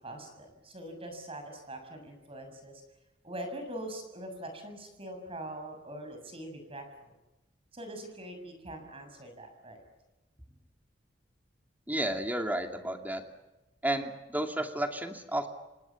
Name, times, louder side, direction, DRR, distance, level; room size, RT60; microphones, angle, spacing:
voice 1, 0.0-2.8 3.2-7.2 7.7-9.8, right 1 dB, 30° right, 6 dB, 7.0 m, -43 dB
voice 2, 11.9-13.2 13.8-15.5, right 1 dB, 10° right, 4 dB, 2.5 m, -32 dB
28.5 x 25.5 x 7.2 m, 1.1 s
head